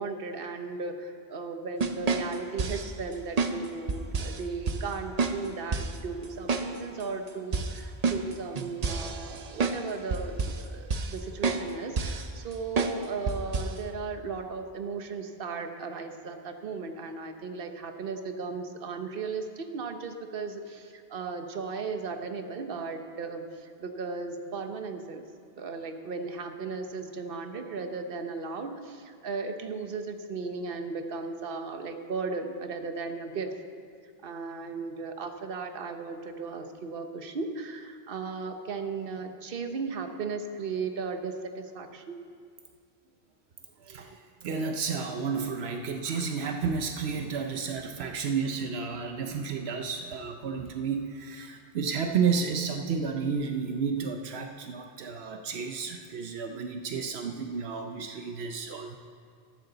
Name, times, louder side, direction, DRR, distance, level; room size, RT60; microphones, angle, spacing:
voice 1, 0.0-25.2 25.6-33.5 34.2-42.2, right 4 dB, 65° right, 6 dB, 1.1 m, -36 dB
sound 1, 1.8-2.9 3.4-3.6 3.9-4.4 4.7-4.8 5.2-5.4 5.7-6.0 6.5-6.7 7.0-7.1 7.5-9.8 10.1-10.6 10.9-11.2 11.4-11.7 12.0-12.3 12.8-13.0 13.3-13.8, right 4 dB, 45° right, 0.7 m, -29 dB
voice 2, 43.8-59.0, right 5 dB, 85° right, 4 dB, 1.0 m, -31 dB
14.0 x 13.5 x 3.9 m, 2.2 s
omnidirectional pair, 1.0 m